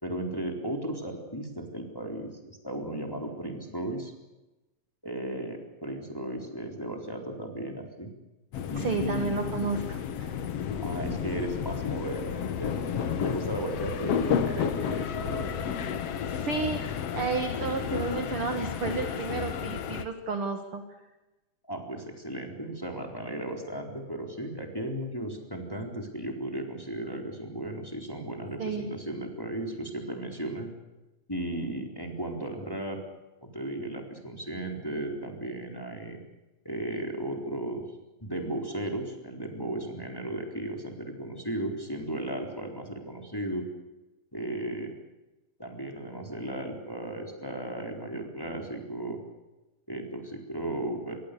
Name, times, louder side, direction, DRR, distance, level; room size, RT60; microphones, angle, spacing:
voice 1, 0.0-4.1 5.0-8.1 8.7-9.3 10.8-15.5 21.7-30.7 31.3-33.0 33.4-36.2 36.6-37.9 38.2-43.7 44.3-45.0 45.6-49.2 49.9-51.2, right 1 dB, 5° left, 2 dB, 3.5 m, -35 dB
sound 1, 8.5-20.0, left 8 dB, 60° left, 1.8 m, -32 dB
voice 2, 8.8-10.3 16.2-20.8 28.6-28.9, right 4 dB, 45° right, 6 dB, 2.1 m, -32 dB
27.0 x 22.5 x 6.8 m, 1.0 s
omnidirectional pair, 4.3 m